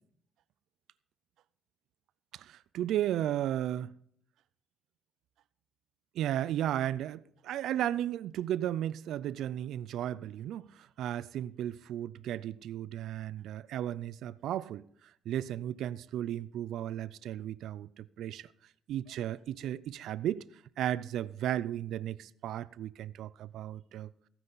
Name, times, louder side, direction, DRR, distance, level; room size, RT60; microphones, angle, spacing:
voice 1, 2.3-3.9 6.1-14.8 15.3-18.5 18.9-20.4 20.8-24.3, right 11 dB, 80° right, 0.4 m, -34 dB
15.0 x 9.8 x 4.0 m
cardioid pair, 90°, 0 cm